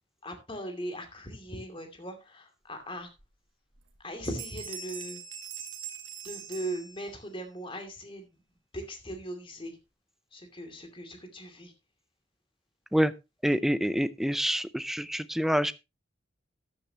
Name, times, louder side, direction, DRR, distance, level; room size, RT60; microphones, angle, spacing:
voice 1, 0.2-3.1 4.0-5.2 6.2-8.3 8.7-9.8 10.3-11.7, right 1 dB, 30° left, 6 dB, 2.6 m, -39 dB
Bell, 3.2-3.3 3.7-4.0 4.2-7.4, right 7 dB, 85° right, 2.0 m, -42 dB
voice 2, 13.4-15.7, equal, ahead, 15 dB, 0.5 m, -26 dB
13.5 x 10.0 x 2.9 m, 0.25 s
head